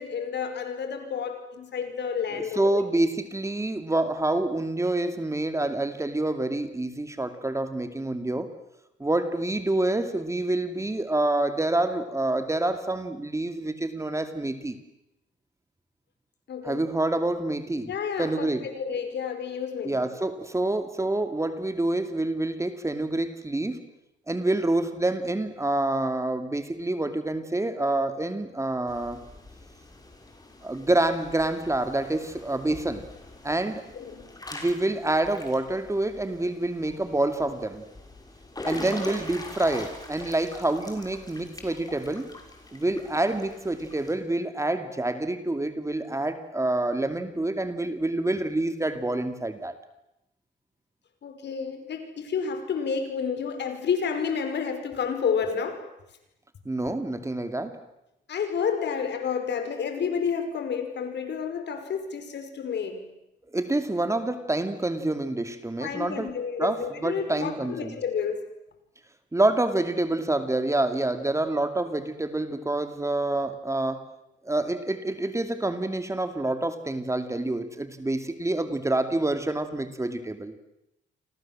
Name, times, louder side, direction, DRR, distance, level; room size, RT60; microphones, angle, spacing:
voice 1, 0.0-2.8 16.5-16.9 17.9-19.9 33.9-34.3 51.2-55.8 58.3-63.0 65.8-68.4, left 6 dB, 60° left, 8 dB, 5.5 m, -30 dB
voice 2, 2.3-8.5 9.0-14.8 16.6-17.9 18.2-18.7 19.8-23.8 24.3-29.2 30.6-33.0 33.4-33.8 34.5-37.8 38.6-42.3 42.7-49.8 56.7-57.8 63.5-66.3 66.6-68.0 69.3-74.1 74.4-80.5, right 2 dB, 15° right, 9 dB, 2.5 m, -27 dB
Water / Splash splatter / Drip, 28.9-44.1, left 2 dB, 20° left, 6.2 m, -43 dB
29.0 x 25.0 x 7.6 m, 0.87 s
cardioid pair, 90°, 20 cm